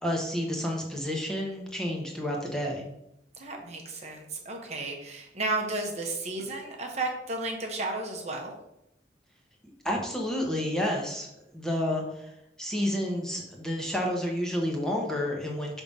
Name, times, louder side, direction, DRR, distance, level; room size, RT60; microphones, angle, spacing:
voice 1, 0.0-2.8 9.8-12.3 12.6-15.8, left 1 dB, 5° left, -2 dB, 1.0 m, -30 dB
voice 2, 3.4-8.5, right 2 dB, 40° right, 1 dB, 0.9 m, -33 dB
5.8 x 3.6 x 5.3 m, 0.83 s
head